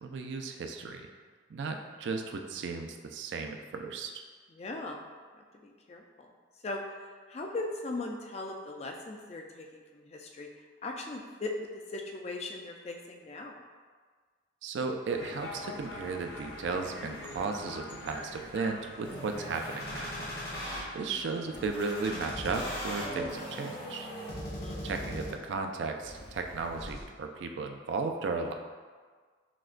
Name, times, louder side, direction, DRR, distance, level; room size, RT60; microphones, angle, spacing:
voice 1, 0.0-1.1 1.5-4.1 14.6-20.3 20.9-24.1 24.8-28.5, right 4 dB, 65° right, 4 dB, 0.3 m, -35 dB
voice 2, 4.6-5.0 5.6-6.3 6.6-6.9 7.3-10.5 10.8-13.6 20.7-21.1 24.6-24.9, left 2 dB, 35° left, 2 dB, 0.3 m, -39 dB
sound 1, 15.1-23.3, left 2 dB, 75° left, 0.6 m, -46 dB
sound 2, 19.0-20.8 21.5-25.6 26.0-27.0, equal, 50° left, 1.0 m, -39 dB
5.9 x 2.2 x 2.4 m, 1.5 s
head